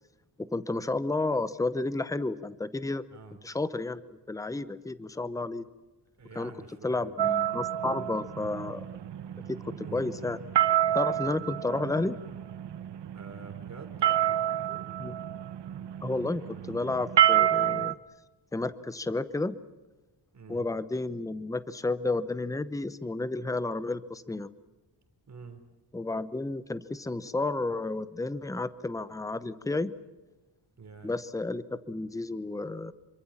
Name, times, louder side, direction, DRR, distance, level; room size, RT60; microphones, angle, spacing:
voice 1, 0.4-3.0 3.4-5.6 6.3-6.5 6.8-8.8 9.9-10.4 10.9-12.2 15.0-15.1 16.0-17.9 18.5-19.6 20.5-24.5 25.9-29.9 31.0-32.9, left 2 dB, 10° left, 14 dB, 0.8 m, -31 dB
voice 2, 3.1-3.4 6.2-7.2 9.8-10.1 13.1-14.9 20.3-20.6 25.3-25.6 30.8-31.1, right 4 dB, 40° right, 7 dB, 3.5 m, -47 dB
sound 1, 7.2-17.9, right 11 dB, 75° right, 1.0 m, -29 dB
27.0 x 24.5 x 7.3 m, 1.1 s
wide cardioid pair, 175°, 42 cm